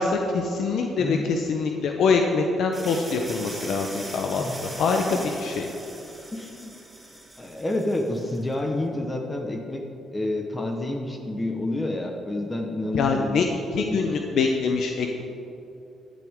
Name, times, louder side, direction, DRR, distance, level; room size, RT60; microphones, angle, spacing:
voice 1, 0.0-5.7 12.9-13.5 13.7-15.2, left 4 dB, 70° left, 3 dB, 0.9 m, -24 dB
voice 2, 1.0-1.3 4.4-4.6 6.3-6.7 7.4-9.8 10.1-13.5 13.7-14.1, left 1 dB, 20° left, 3 dB, 1.2 m, -29 dB
sound 1, 2.7-8.4, right 1 dB, 10° right, 2.0 m, -40 dB
13.5 x 11.0 x 3.7 m, 2.8 s
cardioid pair, 90°, 0 cm